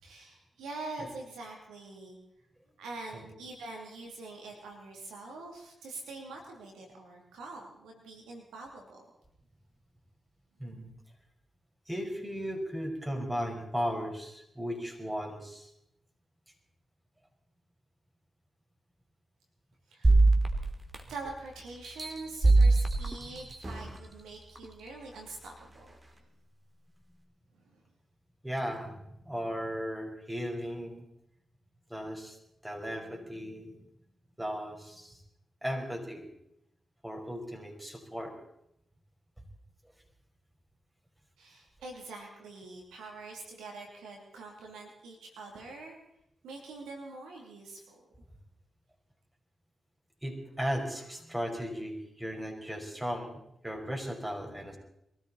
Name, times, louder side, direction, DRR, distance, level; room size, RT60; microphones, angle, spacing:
voice 1, 0.0-2.2 2.8-9.0 19.9-20.3 21.1-26.3 27.5-27.8 41.4-45.9 46.4-48.0, right 3 dB, 90° right, 1 dB, 2.9 m, -45 dB
voice 2, 10.6-10.9 11.9-15.7 28.4-28.9 29.2-31.1 31.9-32.4 32.6-33.7 34.4-35.2 35.6-36.3 37.0-38.4 50.2-54.8, equal, 10° right, 2 dB, 5.0 m, -36 dB
sound 1, 20.0-21.3 21.8-24.0 24.6-24.7, right 2 dB, 30° right, 2.7 m, -24 dB
23.0 x 14.0 x 4.2 m, 0.80 s
supercardioid pair, 40°, 0 cm